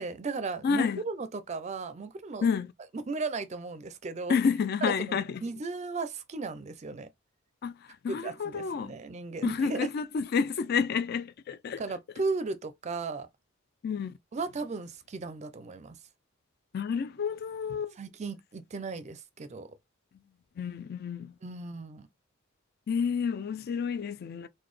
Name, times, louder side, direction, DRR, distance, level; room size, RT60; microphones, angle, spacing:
voice 1, 0.0-2.5 2.9-4.4 4.8-7.1 8.1-9.9 11.8-13.3 14.3-16.0 18.0-19.7 21.4-22.1, right 3 dB, 35° right, 0.4 m, -36 dB
voice 2, 0.6-1.0 2.4-2.7 4.3-5.4 7.6-7.7 8.0-9.0 9.4-11.8 13.8-14.1 16.7-17.9 20.6-21.3 22.9-24.5, left 6 dB, 50° left, 0.3 m, -29 dB
3.9 x 2.2 x 3.2 m
head